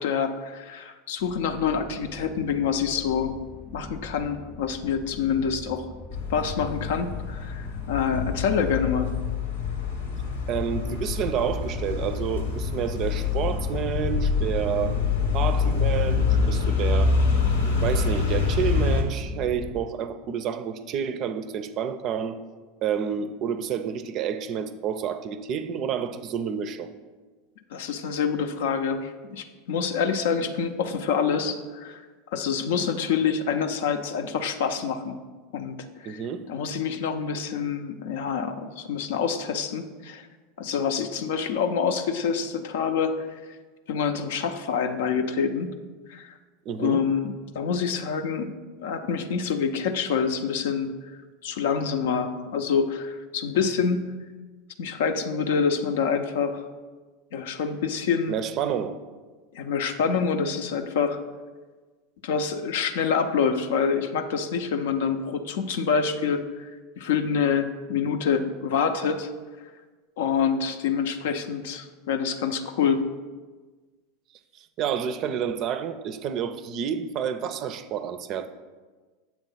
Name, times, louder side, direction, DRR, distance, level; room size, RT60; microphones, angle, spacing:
voice 1, 0.0-3.3 3.7-5.9 6.3-9.1 27.7-32.0 32.3-35.2 35.5-35.8 36.1-36.2 36.5-40.3 40.6-43.3 43.9-45.8 46.1-46.3 46.8-48.5 48.8-50.9 51.4-54.1 54.8-56.7 57.3-58.4 59.5-61.2 62.2-66.7 67.0-69.3 70.2-73.0, left 6 dB, 70° left, 7 dB, 0.5 m, -26 dB
sound 1, 1.2-19.9, left 3 dB, 15° left, 0.5 m, -41 dB
sound 2, 6.1-19.0, left 5 dB, 85° left, 0.9 m, -26 dB
voice 2, 10.5-15.0 15.3-17.2 17.8-22.4 22.8-26.9 36.1-36.5 46.7-47.0 58.3-59.0 74.6-78.5, right 8 dB, 45° right, 10 dB, 0.4 m, -29 dB
7.1 x 3.2 x 5.5 m, 1.3 s
hypercardioid pair, 85°, 0 cm